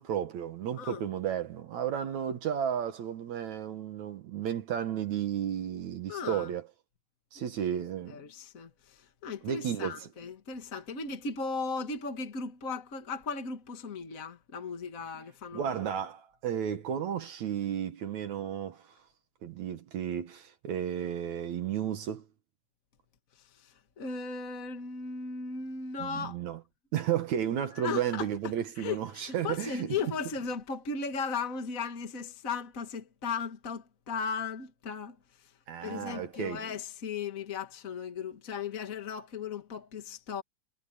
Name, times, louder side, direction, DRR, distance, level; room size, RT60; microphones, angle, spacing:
voice 1, 0.0-6.7 7.3-8.2 9.4-10.1 15.5-18.9 19.4-22.2 26.0-26.6 26.9-30.0 35.7-36.6, right 9 dB, 60° right, 2.4 m, -33 dB
voice 2, 6.1-6.5 7.3-7.8 8.1-15.9 23.3-26.4 27.7-35.5 35.8-40.4, left 5 dB, 40° left, 1.3 m, -37 dB
omnidirectional pair, 4.1 m